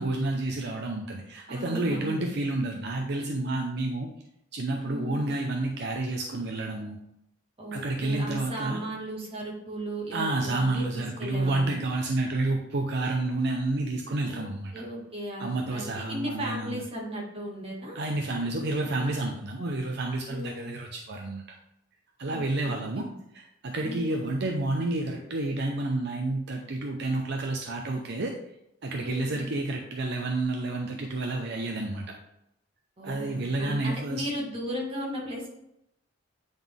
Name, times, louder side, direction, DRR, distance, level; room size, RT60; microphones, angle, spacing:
voice 1, 0.0-4.1 4.5-7.0 7.7-8.8 10.1-14.7 15.4-16.8 17.9-21.4 22.2-23.0 23.3-28.3 28.8-32.1 33.0-34.2, right 2 dB, 60° right, 2 dB, 0.7 m, -30 dB
voice 2, 1.5-2.3 4.8-5.3 7.6-11.7 14.3-14.4 14.7-18.0 20.3-20.7 22.3-23.1 23.8-24.2 29.0-29.4 33.0-35.5, right 1 dB, 30° right, -2 dB, 1.8 m, -36 dB
9.0 x 4.0 x 3.6 m, 0.81 s
head